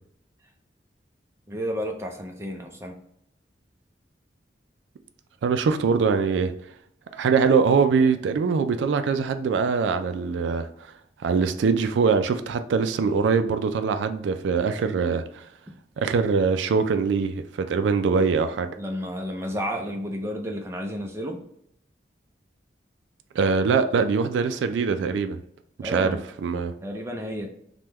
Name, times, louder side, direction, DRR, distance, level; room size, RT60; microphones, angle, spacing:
voice 1, 1.5-3.0 18.8-21.4 25.8-26.2 26.8-27.5, equal, 15° right, 0.4 m, -31 dB
voice 2, 5.4-6.5 7.1-10.9 11.2-15.4 16.0-18.7 23.4-25.4 25.8-26.1 26.4-26.7, right 5 dB, 85° right, 0.3 m, -23 dB
3.4 x 2.2 x 2.9 m
head